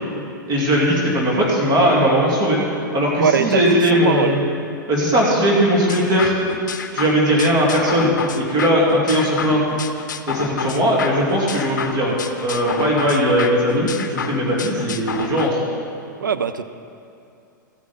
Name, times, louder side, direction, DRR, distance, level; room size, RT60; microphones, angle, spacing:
voice 1, 0.5-2.6 2.9-4.4 4.9-6.3 6.9-9.6 10.3-12.2 12.4-15.6, equal, 35° right, -4 dB, 2.6 m, -18 dB
voice 2, 3.2-4.4 16.2-16.6, right 7 dB, 75° right, 10 dB, 0.6 m, -21 dB
sound 1, 5.9-15.5, left 6 dB, 65° left, 0.6 m, -30 dB
14.5 x 9.6 x 4.2 m, 2.5 s
figure-of-eight pair, 100°, 11 cm